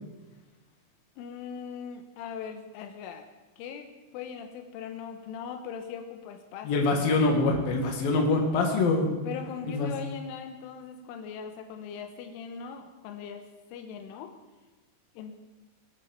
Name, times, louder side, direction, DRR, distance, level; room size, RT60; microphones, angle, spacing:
voice 1, 1.2-3.3 3.6-7.1 9.2-14.3 15.1-15.4, left 7 dB, 85° left, 6 dB, 3.5 m, -40 dB
voice 2, 6.6-9.1 9.7-9.9, left 3 dB, 55° left, 2 dB, 3.6 m, -24 dB
22.0 x 8.3 x 7.3 m, 1.2 s
omnidirectional pair, 5.7 m